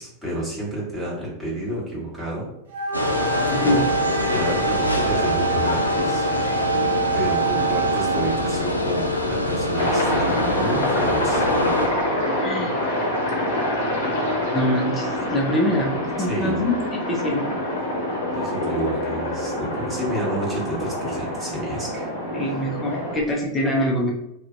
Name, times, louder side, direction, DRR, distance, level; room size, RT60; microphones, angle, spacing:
voice 1, 0.0-2.5 3.6-3.9 4.3-6.5 7.1-11.4 16.2-16.7 18.3-22.1, right 1 dB, ahead, -8 dB, 1.1 m, -30 dB
Wind instrument woodwind instrument, 2.7-8.6, right 5 dB, 60° right, 0.6 m, -26 dB
sound 1, 2.9-11.9, left 1 dB, 90° left, 0.3 m, -24 dB
voice 2, 3.5-3.8 12.4-12.8 14.5-17.4 22.3-24.1, left 1 dB, 15° left, -1 dB, 0.5 m, -24 dB
Aircraft, 9.8-23.2, left 1 dB, 60° left, 0.7 m, -26 dB
2.5 x 2.0 x 2.5 m, 0.80 s
figure-of-eight pair, 90°, 0 cm